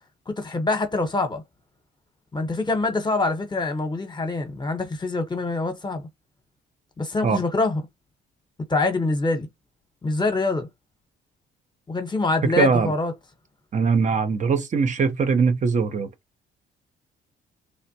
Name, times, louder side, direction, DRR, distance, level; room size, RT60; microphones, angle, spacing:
voice 1, 0.3-1.4 2.3-6.0 7.0-7.8 8.7-9.5 10.0-10.7 11.9-13.1, left 3 dB, 20° left, 0.9 m, -25 dB
voice 2, 12.4-12.9 13.7-16.1, right 5 dB, 40° right, 0.5 m, -21 dB
3.2 x 2.1 x 2.7 m
cardioid pair, 90°, 20 cm